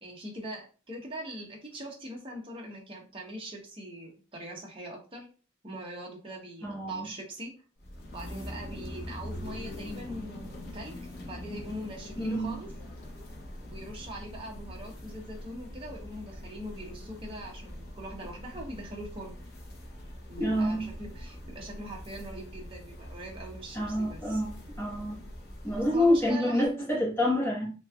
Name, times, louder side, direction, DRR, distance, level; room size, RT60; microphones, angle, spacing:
voice 1, 0.0-5.3 5.6-7.5 8.1-10.9 11.3-12.7 13.7-19.4 20.3-24.4 25.8-26.8, right 1 dB, 25° right, -1 dB, 0.9 m, -42 dB
voice 2, 6.6-7.1 12.2-12.5 20.4-20.9 23.7-25.2 25.6-27.7, left 1 dB, 10° left, -5 dB, 1.2 m, -27 dB
sound 1, 7.8-26.3, left 1 dB, 50° left, 0.8 m, -43 dB
3.4 x 3.1 x 2.3 m, 0.36 s
head